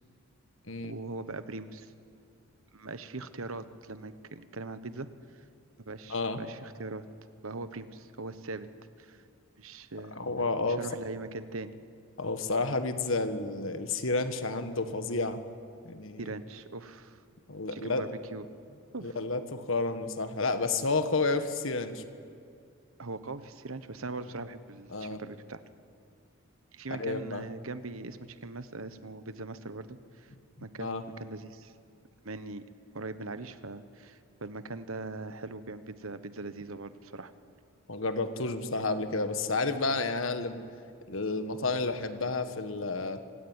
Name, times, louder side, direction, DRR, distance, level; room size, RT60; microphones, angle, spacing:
voice 1, 0.8-1.9 2.7-5.1 5.9-7.1 7.4-8.7 9.0-9.2 9.6-10.2 10.7-11.7 16.2-17.2 17.7-18.5 18.9-19.2 23.0-25.6 26.7-30.3 30.6-31.7 32.2-32.6 32.9-37.3, right 3 dB, 70° right, 12 dB, 1.2 m, -41 dB
voice 2, 6.1-6.4 10.1-10.8 12.2-15.4 15.8-16.3 17.5-18.1 19.0-22.0 24.9-25.2 26.9-27.4 30.8-31.0 37.9-40.6 41.1-43.2, left 3 dB, 65° left, 9 dB, 1.6 m, -31 dB
26.5 x 16.5 x 9.8 m, 2.4 s
head